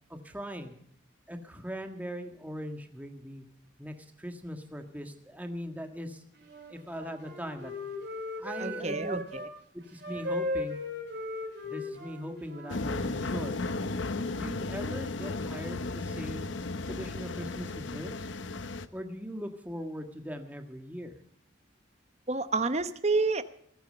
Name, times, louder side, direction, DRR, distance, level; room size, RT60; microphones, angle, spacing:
voice 1, 0.1-0.7 1.3-3.4 3.8-6.2 6.7-7.7 8.4-9.2 9.9-10.8 11.6-13.6 14.3-16.5 16.8-18.3 18.9-21.1, equal, 10° right, 5 dB, 1.6 m, -40 dB
Wind instrument woodwind instrument, 6.4-9.5 10.0-13.2, left 1 dB, 55° right, 4.7 m, -37 dB
voice 2, 8.6-9.4 22.3-23.4, right 3 dB, 35° right, 12 dB, 0.9 m, -29 dB
sound 1, 12.7-18.9, left 3 dB, 70° left, 0.9 m, -34 dB
20.0 x 9.1 x 6.6 m, 0.67 s
head